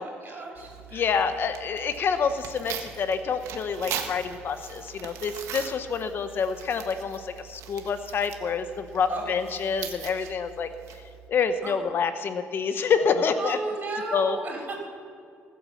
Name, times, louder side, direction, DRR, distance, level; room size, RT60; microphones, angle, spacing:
voice 1, 0.0-1.0 9.1-9.2 11.6-11.7 13.4-14.8, right 3 dB, 40° right, 0 dB, 4.8 m, -34 dB
Tearing, 0.5-11.3, right 9 dB, 80° right, 1.5 m, -41 dB
voice 2, 0.9-10.7 11.3-13.6 14.1-14.4, left 6 dB, 50° left, 10 dB, 0.8 m, -27 dB
19.0 x 8.6 x 7.1 m, 2.3 s
cardioid pair, 115°, 5 cm